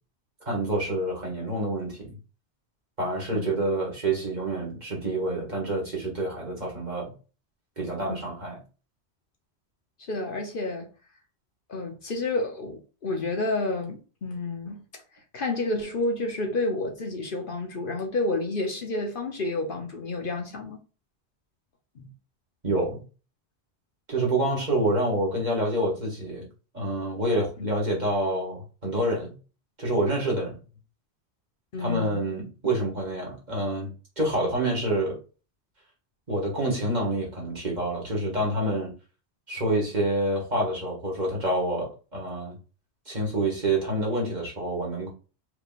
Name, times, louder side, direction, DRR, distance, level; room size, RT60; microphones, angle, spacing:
voice 1, 0.5-2.2 3.0-7.1 7.8-8.6 22.6-23.0 24.1-26.4 26.7-29.4 29.8-30.6 31.8-35.2 36.3-38.9 39.5-42.6 43.1-45.1, right 1 dB, 40° right, 2.0 m, -27 dB
voice 2, 10.1-10.9 11.7-14.8 15.3-20.8 22.0-22.1 27.6-27.7 31.7-32.2, left 2 dB, 55° left, 1.0 m, -30 dB
4.9 x 3.3 x 2.5 m
omnidirectional pair, 1.1 m